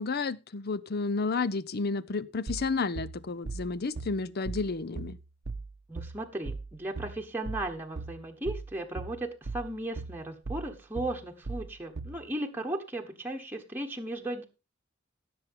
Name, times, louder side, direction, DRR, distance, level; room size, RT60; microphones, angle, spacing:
voice 1, 0.0-5.2, left 4 dB, 50° left, 0.6 m, -31 dB
sound 1, 2.5-12.3, right 3 dB, 55° right, 0.7 m, -38 dB
voice 2, 5.9-14.5, right 1 dB, 10° right, 1.2 m, -36 dB
16.5 x 7.0 x 3.7 m
head